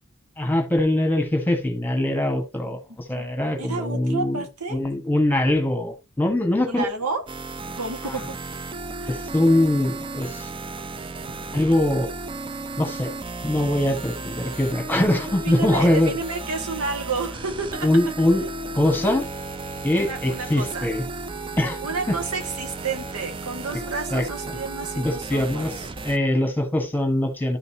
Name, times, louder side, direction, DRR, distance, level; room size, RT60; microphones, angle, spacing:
voice 1, 0.4-4.4 4.7-6.9 8.0-8.2 9.1-10.5 11.5-12.1 12.8-13.1 13.4-16.1 17.8-18.5 18.7-19.3 19.8-21.0 21.6-21.8 22.1-22.2 24.1-24.6 25.0-27.6, left 1 dB, 10° left, 1.4 m, -22 dB
voice 2, 3.6-4.8 6.7-7.2 7.8-8.3 9.0-9.2 15.4-17.9 20.0-20.9 21.8-25.8, right 4 dB, 90° right, 1.7 m, -31 dB
sound 1, 7.3-26.2, right 2 dB, 25° right, 0.5 m, -34 dB
12.0 x 5.3 x 2.8 m
head